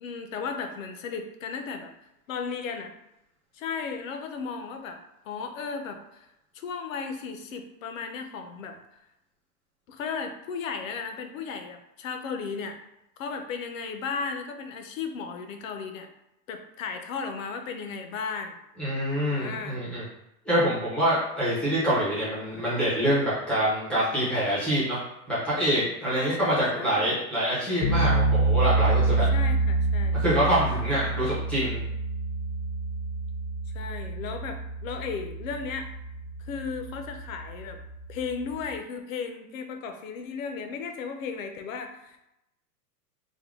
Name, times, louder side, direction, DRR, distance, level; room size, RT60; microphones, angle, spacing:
voice 1, 0.0-1.9 2.3-2.9 3.5-5.0 5.2-6.3 6.5-8.8 9.9-12.8 13.2-16.1 16.5-18.6 19.3-19.8 26.1-27.1 29.3-30.2 33.7-35.9 36.4-37.8 38.1-42.2, left 5 dB, 55° left, 6 dB, 0.6 m, -35 dB
voice 2, 18.8-20.0 20.5-25.0 25.3-29.3 30.1-31.8, equal, ahead, -10 dB, 0.4 m, -25 dB
sound 1, 27.8-38.7, right 3 dB, 80° left, 0.9 m, -27 dB
3.6 x 2.1 x 3.5 m, 0.87 s
supercardioid pair, 150°, 48 cm